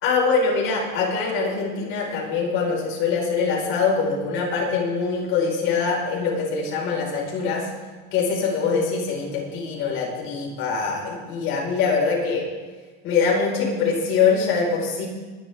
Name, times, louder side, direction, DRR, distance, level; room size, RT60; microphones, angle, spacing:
voice 1, 0.0-7.7 8.1-12.5 13.0-15.1, left 5 dB, 45° left, -3 dB, 5.5 m, -23 dB
21.5 x 11.5 x 3.8 m, 1.3 s
supercardioid pair, 145°, 29 cm